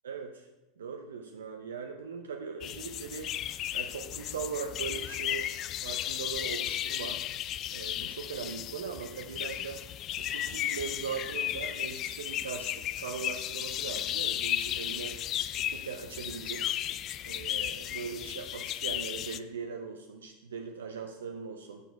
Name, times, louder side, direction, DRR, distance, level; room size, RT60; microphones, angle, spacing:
voice 1, 0.0-0.5 0.8-3.3 3.7-5.5 5.8-7.2 7.7-9.8 10.2-15.2 15.6-16.7 17.2-21.8, right 6 dB, 80° right, 4 dB, 0.6 m, -40 dB
sound 1, 2.6-19.4, left 12 dB, 40° left, 0.3 m, -35 dB
6.7 x 6.1 x 4.5 m, 0.98 s
hypercardioid pair, 90°, 0 cm